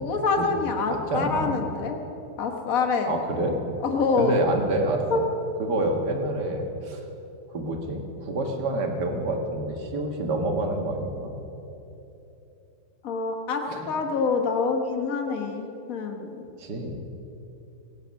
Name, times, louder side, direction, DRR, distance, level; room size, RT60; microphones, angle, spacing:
voice 1, 0.0-2.0 2.4-3.2 3.9-4.4 5.1-5.2 13.0-16.3, left 4 dB, 55° left, 4 dB, 1.6 m, -26 dB
voice 2, 0.9-1.6 3.1-3.6 4.2-5.2 5.6-7.0 7.5-11.3 13.7-13.9 16.6-17.0, right 2 dB, 85° right, 3 dB, 2.2 m, -28 dB
22.5 x 9.1 x 6.4 m, 3.0 s
omnidirectional pair, 1.8 m